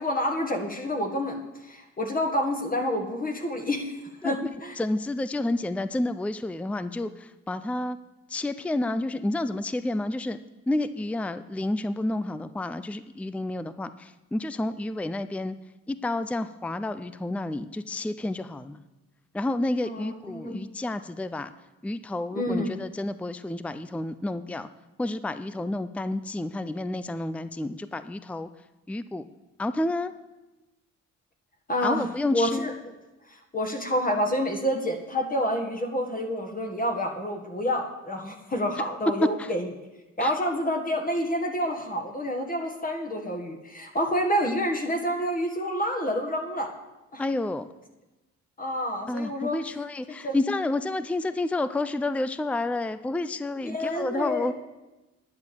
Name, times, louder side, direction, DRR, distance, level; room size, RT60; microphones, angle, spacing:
voice 1, 0.0-3.9 4.2-4.8 19.8-20.6 22.3-22.7 31.7-32.7 33.3-39.7 40.2-46.7 47.1-47.2 48.6-49.6 50.2-50.4 53.6-54.5, equal, 30° left, 2 dB, 1.7 m, -28 dB
voice 2, 4.8-8.0 8.3-10.4 10.7-15.5 15.9-18.8 19.3-21.5 21.8-24.7 25.0-28.5 28.9-29.2 29.6-30.1 31.8-32.7 39.4-39.5 40.2-40.3 47.2-47.7 49.1-54.5, left 2 dB, 5° left, 13 dB, 0.5 m, -30 dB
10.5 x 9.3 x 6.9 m, 1.1 s
cardioid pair, 90°, 30 cm